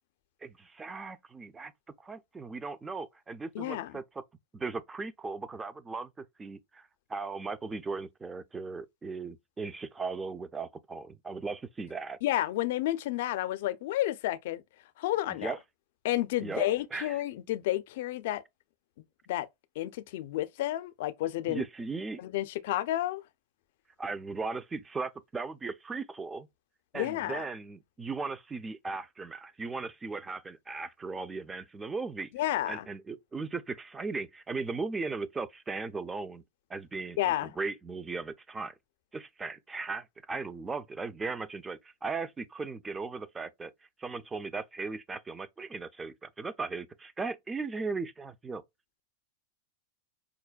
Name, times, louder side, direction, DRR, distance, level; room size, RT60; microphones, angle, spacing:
voice 1, 0.4-1.7 2.0-4.2 4.5-12.2 15.4-15.6 16.4-17.2 21.5-22.2 24.0-26.5 26.9-32.3 32.7-36.4 36.7-38.7 39.1-43.7 44.0-48.6, right 4 dB, 15° right, 0.4 m, -37 dB
voice 2, 3.5-3.9 12.2-14.6 15.0-15.5 16.0-18.4 19.3-19.5 19.8-21.6 22.2-23.2 26.9-27.5 32.3-32.9 37.2-37.5, left 14 dB, 65° left, 0.4 m, -31 dB
4.9 x 2.2 x 2.3 m
hypercardioid pair, 125°, 0 cm